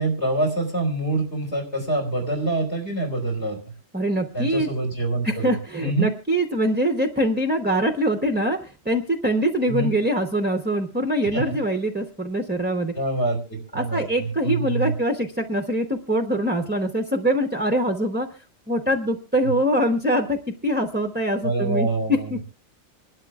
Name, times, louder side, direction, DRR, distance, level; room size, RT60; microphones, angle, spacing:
voice 1, 0.0-3.6 4.3-6.1 9.7-9.9 11.3-11.6 13.0-14.9 21.4-22.4, right 2 dB, 55° left, 1 dB, 4.0 m, -25 dB
voice 2, 3.9-4.7 5.2-12.9 13.7-18.3 18.7-22.4, equal, 10° right, 6 dB, 0.7 m, -23 dB
27.0 x 12.0 x 2.4 m, 0.29 s
omnidirectional pair, 1.4 m